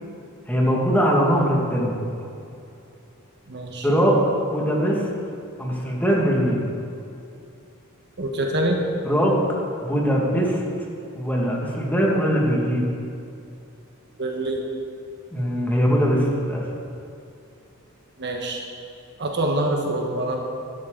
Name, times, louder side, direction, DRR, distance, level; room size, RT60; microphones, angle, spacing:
voice 1, 0.5-2.0 3.8-4.2 4.5-5.0 5.6-6.6 9.1-9.4 9.8-10.6 11.2-12.9 15.3-16.6, equal, 10° left, -3 dB, 2.0 m, -21 dB
voice 2, 3.5-3.9 8.2-8.8 14.2-14.6 18.2-18.6 19.2-20.4, right 1 dB, 55° right, 1 dB, 1.3 m, -25 dB
13.5 x 12.0 x 3.9 m, 2.6 s
head